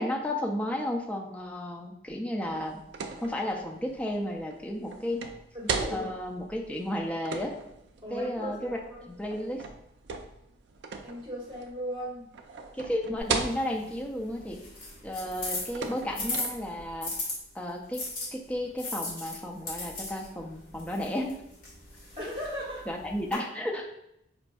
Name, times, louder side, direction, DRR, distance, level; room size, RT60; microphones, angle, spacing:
voice 1, 0.0-2.8 3.2-5.2 5.9-7.6 8.1-8.8 9.1-9.7 12.7-14.6 15.0-17.1 17.5-21.4 22.9-23.9, left 1 dB, 5° left, 1 dB, 0.4 m, -33 dB
sound 1, 2.4-17.0, right 4 dB, 70° right, 0.4 m, -39 dB
voice 2, 5.5-6.1 8.0-9.1 11.0-12.3 22.2-22.9, equal, 30° right, -6 dB, 1.4 m, -37 dB
sound 2, 13.2-17.3 17.9-23.3, left 2 dB, 50° left, 1.3 m, -38 dB
4.9 x 2.5 x 2.3 m, 0.77 s
head